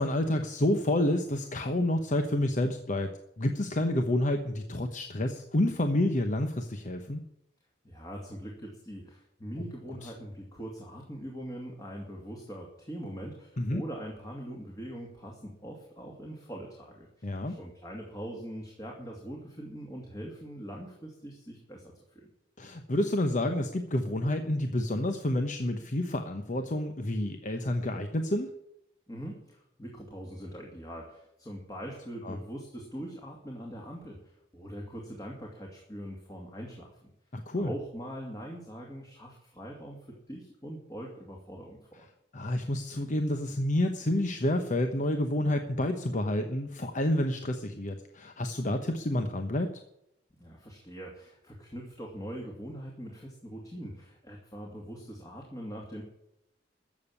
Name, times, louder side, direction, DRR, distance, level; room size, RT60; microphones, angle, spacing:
voice 1, 0.0-3.1 3.4-7.2 10.0-10.1 13.6-13.8 17.2-17.5 22.6-28.5 32.2-32.4 37.3-37.7 42.3-49.7, left 1 dB, 45° left, 6 dB, 1.0 m, -29 dB
voice 2, 7.8-22.3 29.1-37.1 37.6-40.0 40.3-42.1 50.4-56.0, equal, 20° left, 0 dB, 2.5 m, -42 dB
14.0 x 7.3 x 9.6 m, 0.81 s
head